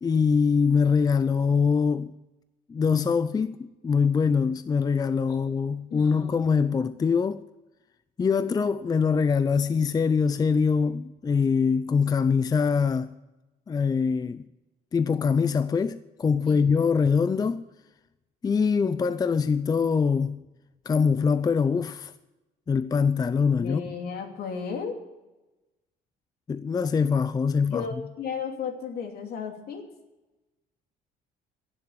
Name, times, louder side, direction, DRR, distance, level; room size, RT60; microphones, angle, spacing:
voice 1, 0.0-2.1 2.7-7.4 8.2-13.1 13.7-14.4 14.9-17.6 18.4-20.4 20.9-22.1 22.7-23.8 26.5-27.9, left 5 dB, 25° left, 0.5 m, -23 dB
voice 2, 5.9-6.3 16.5-16.8 23.6-24.9 27.7-29.9, left 6 dB, 65° left, 2.9 m, -34 dB
16.5 x 7.5 x 8.7 m
cardioid pair, 110°, 17 cm